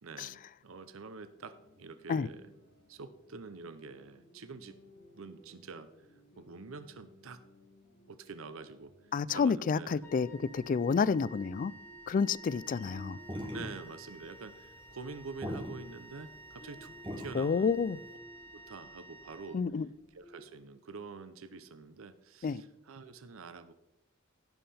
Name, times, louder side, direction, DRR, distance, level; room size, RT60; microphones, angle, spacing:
voice 1, 0.0-2.5 2.9-4.8 5.1-5.9 6.4-7.4 8.1-9.0 9.3-10.1 13.5-17.7 18.5-19.6 20.1-23.7, right 4 dB, 75° right, 0.7 m, -47 dB
sound 1, 1.3-20.6, equal, 55° left, 4.6 m, -58 dB
voice 2, 9.1-11.7 12.1-13.2 17.3-18.0 19.5-19.9 22.4-22.6, left 5 dB, 40° left, 0.3 m, -29 dB
Wind instrument woodwind instrument, 10.0-20.1, right 2 dB, 10° left, 1.3 m, -53 dB
sound 2, 13.2-18.1, equal, 25° right, 2.1 m, -42 dB
16.0 x 5.7 x 4.3 m
head